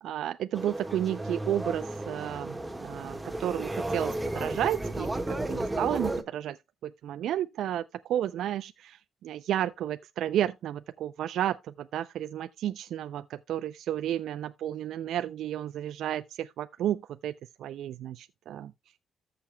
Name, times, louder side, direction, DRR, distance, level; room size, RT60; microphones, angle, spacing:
voice 1, 0.0-2.5 2.8-6.6 6.8-17.3 17.6-18.7, right 11 dB, 75° right, 0.4 m, -32 dB
sound 1, 0.5-6.2, right 1 dB, 15° right, 1.5 m, -33 dB
14.0 x 6.8 x 2.2 m
cardioid pair, 90°, 0 cm